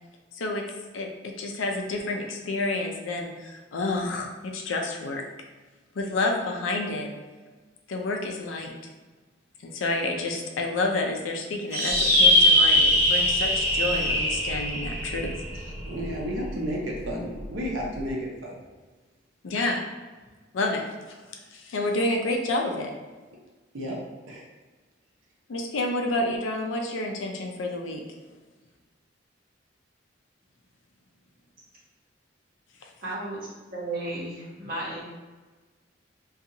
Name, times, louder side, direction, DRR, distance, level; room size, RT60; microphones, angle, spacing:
voice 1, 0.3-0.6 0.9-5.2 5.9-7.1 7.9-8.7 9.6-15.6 19.4-19.8 20.5-20.8 21.5-22.9 25.5-28.0, left 2 dB, 85° left, 2 dB, 0.4 m, -29 dB
sound 1, 11.7-16.5, left 1 dB, 15° right, 1.0 m, -22 dB
voice 2, 15.9-18.5 23.7-24.0 24.3-24.4, equal, 90° right, -2 dB, 0.7 m, -32 dB
voice 3, 33.0-35.1, right 2 dB, 50° right, -7 dB, 1.1 m, -34 dB
2.6 x 2.3 x 2.7 m, 1.3 s
head